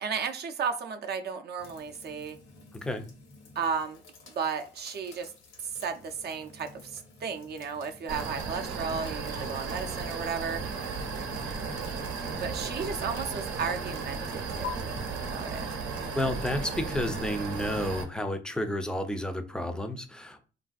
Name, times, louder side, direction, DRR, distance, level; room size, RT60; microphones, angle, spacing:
voice 1, 0.0-2.4 3.6-4.0 4.3-5.3 5.7-10.6 12.4-15.7, right 6 dB, 55° right, 5 dB, 0.5 m, -34 dB
sound 1, 1.6-14.7, left 5 dB, 85° left, 0.9 m, -50 dB
sound 2, 8.1-18.0, right 4 dB, 85° right, 0.7 m, -35 dB
voice 2, 16.1-20.5, left 1 dB, 5° left, 8 dB, 0.4 m, -31 dB
3.2 x 2.5 x 2.3 m, 0.36 s
cardioid pair, 90°, 20 cm